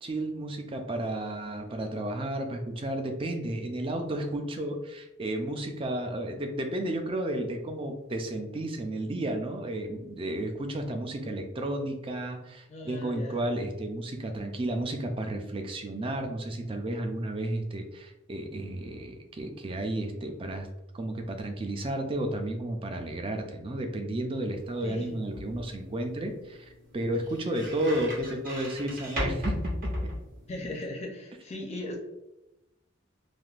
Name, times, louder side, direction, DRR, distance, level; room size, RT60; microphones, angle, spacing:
voice 1, 0.0-20.7 20.9-30.1, right 1 dB, 25° right, 5 dB, 0.4 m, -32 dB
voice 2, 12.7-13.4 24.8-25.2 30.5-32.0, left 1 dB, 35° left, 0 dB, 0.5 m, -38 dB
sound 1, 24.5-30.8, equal, 45° right, 1.1 m, -37 dB
3.4 x 2.5 x 2.4 m, 0.96 s
head